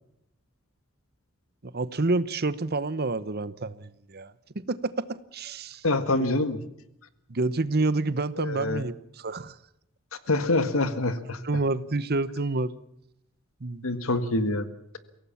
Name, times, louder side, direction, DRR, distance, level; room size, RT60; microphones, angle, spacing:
voice 1, 1.6-5.8 7.3-9.6 11.4-12.7 13.6-14.0, right 3 dB, 50° right, 16 dB, 1.0 m, -28 dB
voice 2, 5.8-6.6 8.4-8.8 10.3-11.4 13.8-14.7, left 2 dB, 85° left, 12 dB, 1.7 m, -25 dB
24.0 x 17.0 x 7.2 m, 0.79 s
head